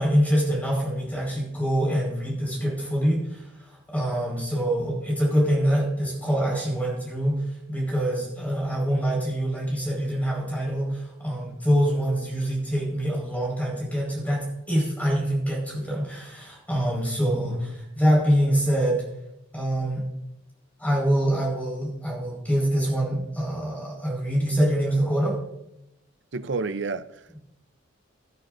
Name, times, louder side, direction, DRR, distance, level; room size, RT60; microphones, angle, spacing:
voice 1, 0.0-3.5 3.9-19.1 19.5-20.0 20.8-25.4, equal, 5° left, 4.9 m, -25 dB
voice 2, 26.3-27.4, right 4 dB, 60° right, 0.5 m, -30 dB
17.5 x 11.5 x 2.6 m
head